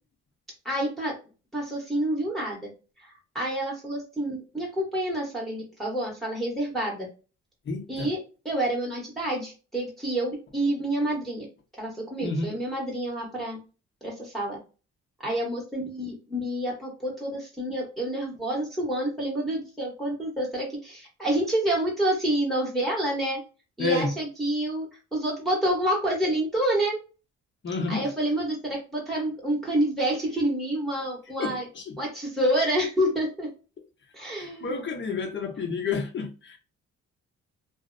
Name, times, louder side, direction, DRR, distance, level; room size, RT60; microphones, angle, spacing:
voice 1, 0.6-1.1 1.5-2.7 3.0-7.1 7.9-8.2 8.4-11.5 11.8-13.6 14.0-14.6 15.2-23.4 23.8-27.0 27.9-31.7 32.0-33.5 34.1-34.8, right 1 dB, ahead, 1.0 m, -28 dB
voice 2, 7.7-8.1 12.2-12.6 23.8-24.1 27.6-28.1 31.4-32.0 34.4-36.6, left 4 dB, 40° left, 0.7 m, -30 dB
2.5 x 2.0 x 2.5 m
cardioid pair, 90°, 30 cm